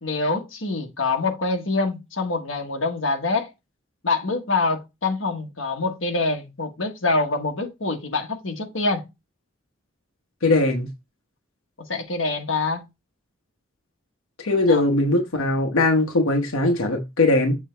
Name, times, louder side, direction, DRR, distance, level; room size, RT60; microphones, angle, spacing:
voice 1, 0.0-3.5 4.0-9.0 11.9-12.8 14.7-14.8, left 3 dB, 70° left, 1.4 m, -25 dB
voice 2, 10.4-10.9 14.4-17.6, left 2 dB, 90° left, 1.1 m, -20 dB
7.3 x 3.4 x 4.5 m
head